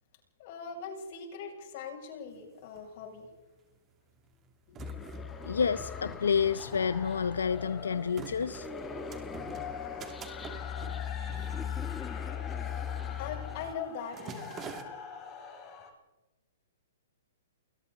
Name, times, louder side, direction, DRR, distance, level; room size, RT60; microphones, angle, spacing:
voice 1, 0.4-3.3 4.7-5.1 13.2-14.7, left 6 dB, 45° left, 2 dB, 7.1 m, -41 dB
sound 1, 2.3-2.4 2.6-3.4 4.1-12.4 12.7-12.9 13.3-13.6 13.9-14.8, right 6 dB, 20° right, 2.8 m, -47 dB
sound 2, 4.8-15.9, left 6 dB, 30° left, 5.0 m, -45 dB
sound 3, 4.8-13.7, left 8 dB, 10° left, 1.0 m, -40 dB
voice 2, 5.4-8.7, left 6 dB, 90° left, 15 dB, 0.7 m, -29 dB
29.5 x 22.0 x 4.1 m, 1.1 s
hypercardioid pair, 140°, 0 cm